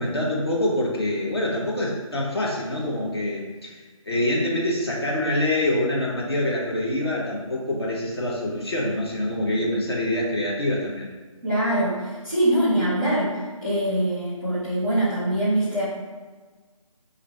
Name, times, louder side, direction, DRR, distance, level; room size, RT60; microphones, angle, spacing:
voice 1, 0.0-11.1, left 1 dB, 45° left, -3 dB, 0.9 m, -25 dB
voice 2, 11.4-13.3 13.6-15.8, right 1 dB, 5° right, -14 dB, 0.9 m, -23 dB
5.7 x 2.6 x 3.2 m, 1.4 s
figure-of-eight pair, 175°, 18 cm